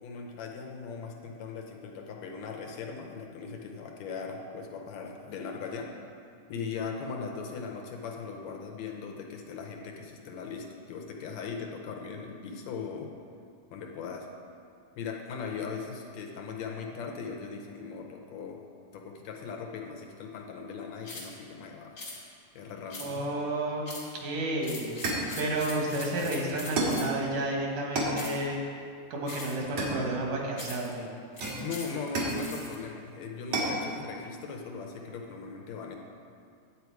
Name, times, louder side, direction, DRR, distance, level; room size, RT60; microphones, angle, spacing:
voice 1, 0.0-6.0 6.5-13.1 13.7-14.3 15.0-18.6 18.9-21.9 22.6-23.3 31.6-36.0, left 5 dB, 75° left, 1 dB, 1.9 m, -39 dB
sound 1, 21.0-21.3 22.0-22.2 22.9-23.3 23.8-24.1 24.6-27.2 28.1-28.4 29.3-29.7 30.6-30.9 31.4-32.7, left 2 dB, 30° left, 1.7 m, -42 dB
voice 2, 23.0-23.8 24.1-28.6 29.1-31.1, right 1 dB, 90° right, -1 dB, 3.0 m, -31 dB
sound 2, 24.3-24.5 25.0-25.4 26.8-27.1 28.0-28.2 29.8-30.4 31.4-32.5 33.5-33.8, right 2 dB, 60° right, 2.6 m, -31 dB
10.5 x 8.3 x 4.7 m, 2.4 s
omnidirectional pair, 3.5 m